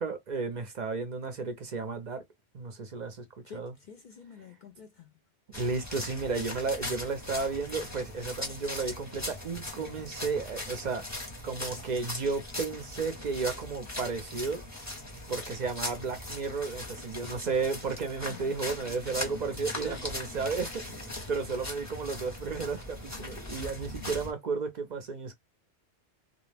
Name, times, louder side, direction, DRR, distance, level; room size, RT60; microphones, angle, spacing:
voice 1, 0.0-2.2 2.5-3.3 3.5-3.7 5.5-11.0 11.4-14.6 15.3-25.3, right 4 dB, 55° right, 0.5 m, -33 dB
voice 2, 3.4-5.1 18.3-18.7 19.0-19.2 19.8-20.0, left 6 dB, 55° left, 0.5 m, -48 dB
sound 1, 5.5-24.3, left 1 dB, 20° left, 0.6 m, -40 dB
2.3 x 2.0 x 3.2 m
omnidirectional pair, 1.2 m